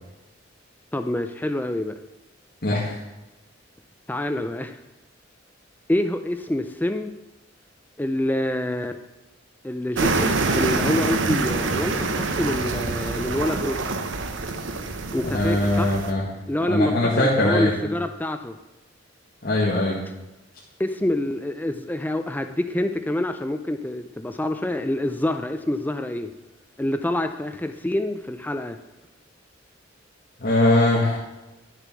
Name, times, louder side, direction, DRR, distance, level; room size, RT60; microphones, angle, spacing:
voice 1, 0.9-1.9 4.1-4.8 5.9-7.1 8.0-9.0 9.6-13.8 15.1-16.0 16.5-18.6 20.8-26.3 26.8-28.8, left 1 dB, 10° left, 7 dB, 0.4 m, -26 dB
voice 2, 2.6-2.9 15.3-16.2 16.6-17.7 19.4-20.0 30.4-31.2, left 1 dB, 55° left, -6 dB, 1.8 m, -21 dB
sound 1, 10.0-16.1, right 3 dB, 75° right, 0.9 m, -26 dB
10.5 x 6.7 x 6.1 m, 1.0 s
head